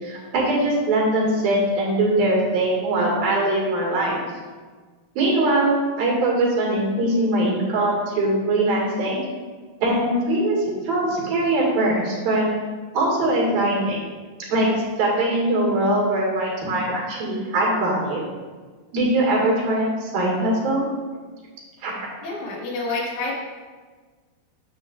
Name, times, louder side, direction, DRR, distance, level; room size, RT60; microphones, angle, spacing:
voice 1, 0.0-4.2 5.2-9.2 9.8-12.5 12.9-14.0 14.5-18.3 18.9-20.8 21.8-22.1, right 1 dB, 80° right, -4 dB, 3.9 m, -21 dB
voice 2, 22.2-23.3, left 3 dB, 65° left, -3 dB, 2.9 m, -28 dB
9.8 x 8.3 x 2.5 m, 1.4 s
omnidirectional pair, 4.0 m